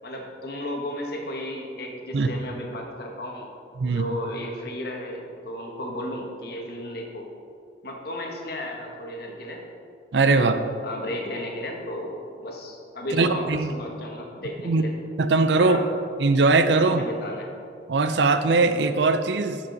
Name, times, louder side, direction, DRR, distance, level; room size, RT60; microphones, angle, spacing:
voice 1, 0.0-3.5 3.8-7.3 7.8-9.6 10.3-10.6 10.8-14.9 15.6-15.9 16.8-17.5, left 1 dB, 60° left, 1 dB, 1.4 m, -34 dB
voice 2, 10.1-10.5 13.1-13.7 14.7-14.8 15.2-15.8 16.2-17.0 17.9-19.6, right 3 dB, 75° right, 10 dB, 0.5 m, -20 dB
11.5 x 6.0 x 4.0 m, 2.3 s
head